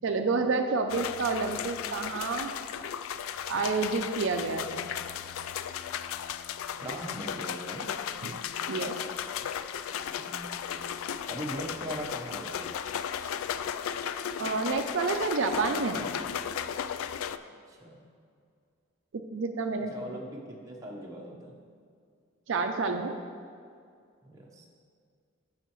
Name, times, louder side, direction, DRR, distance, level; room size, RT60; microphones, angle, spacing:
voice 1, 0.0-2.5 3.5-4.9 8.2-8.4 8.7-9.0 14.4-16.1 19.3-20.1 22.5-23.2, right 4 dB, 65° right, 5 dB, 0.4 m, -29 dB
sound 1, 0.9-17.4, left 8 dB, 80° left, 0.3 m, -35 dB
voice 2, 6.8-7.9 10.2-10.8 11.3-12.7 17.7-18.0 19.8-21.6 24.2-24.6, right 1 dB, 15° right, -2 dB, 0.9 m, -40 dB
14.5 x 5.6 x 3.1 m, 2.3 s
head